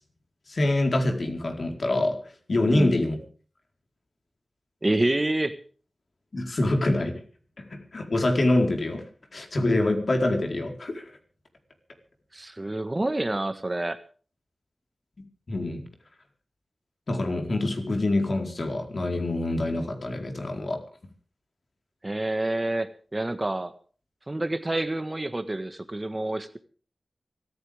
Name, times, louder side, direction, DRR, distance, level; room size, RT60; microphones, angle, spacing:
voice 1, 0.5-2.2 2.5-3.2 6.3-7.2 7.6-9.0 9.3-11.0 15.5-15.8 17.1-20.8, left 2 dB, 60° left, 4 dB, 4.6 m, -25 dB
voice 2, 4.8-5.6 12.3-14.0 22.0-23.7 24.3-26.6, right 1 dB, 25° right, 10 dB, 1.6 m, -28 dB
25.0 x 14.0 x 3.7 m, 0.41 s
wide cardioid pair, 65°, 0 cm